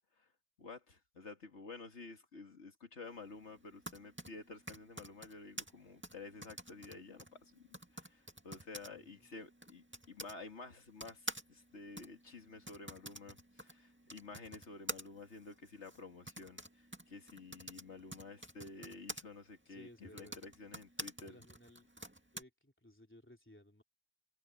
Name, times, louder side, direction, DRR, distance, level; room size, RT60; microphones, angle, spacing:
voice 1, 0.6-7.7 7.9-21.4, left 3 dB, 75° left, 2.4 m, -51 dB
Typing, 3.6-10.4 11.0-19.2 20.0-22.4, right 1 dB, 10° right, 1.9 m, -48 dB
voice 2, 8.9-9.3 19.7-20.4 21.2-21.9 22.3-23.8, left 1 dB, 10° left, 3.3 m, -59 dB
omnidirectional pair, 1.2 m